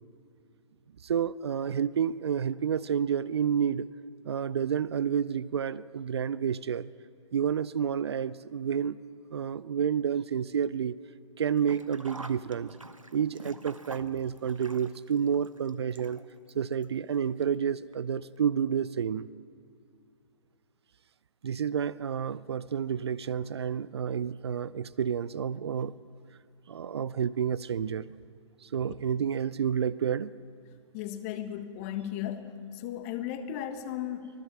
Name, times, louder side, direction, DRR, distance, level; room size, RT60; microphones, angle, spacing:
voice 1, 1.0-3.9 4.2-6.9 7.3-9.0 9.3-11.0 11.4-12.7 13.1-16.2 16.5-19.3 21.4-25.9 26.7-28.1 28.6-30.3, right 8 dB, 55° right, 18 dB, 0.6 m, -30 dB
Sink (filling or washing), 11.6-16.5 16.8-16.9 17.9-18.0 18.3-18.4, right 2 dB, 90° right, 1.2 m, -46 dB
voice 2, 30.9-34.3, left 10 dB, 30° left, 9 dB, 1.5 m, -36 dB
25.0 x 18.0 x 7.5 m, 2.3 s
figure-of-eight pair, 125°, 16 cm